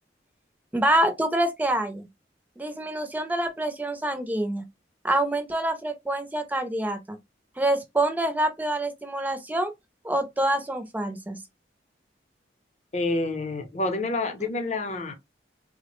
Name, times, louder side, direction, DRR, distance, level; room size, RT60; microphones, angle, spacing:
voice 1, 0.7-2.1 2.6-4.7 5.0-7.2 7.6-9.7 10.0-11.4, right 1 dB, 10° right, 0.4 m, -26 dB
voice 2, 12.9-15.1, left 2 dB, 40° left, 0.6 m, -28 dB
3.2 x 2.1 x 2.9 m
head